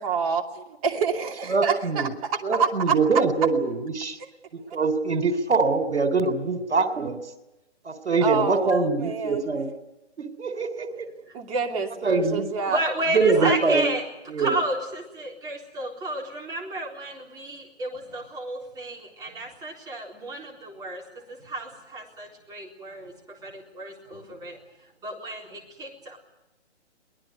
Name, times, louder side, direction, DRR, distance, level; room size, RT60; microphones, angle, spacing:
voice 1, 0.0-2.1 2.5-3.0 8.2-9.5 11.3-12.8 13.4-13.6, right 6 dB, 30° right, 2 dB, 2.8 m, -27 dB
voice 2, 1.5-2.1 2.4-4.2 4.5-7.2 7.9-9.7 10.2-11.1 12.0-12.5 13.1-13.9 14.3-14.6, right 4 dB, 75° right, 8 dB, 3.6 m, -24 dB
voice 3, 12.7-14.0 14.4-21.0 21.4-23.1 23.4-24.6 25.0-26.2, right 1 dB, 10° right, -1 dB, 3.9 m, -32 dB
23.0 x 19.5 x 9.6 m, 0.95 s
hypercardioid pair, 145°, 34 cm